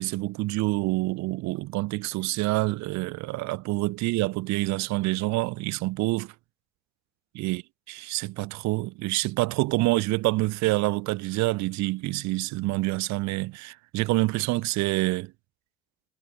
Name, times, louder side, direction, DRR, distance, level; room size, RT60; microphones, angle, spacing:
voice 1, 0.0-6.3 7.3-7.6 7.9-15.3, right 21 dB, 55° right, 1.0 m, -27 dB
hypercardioid pair, 60°, 34 cm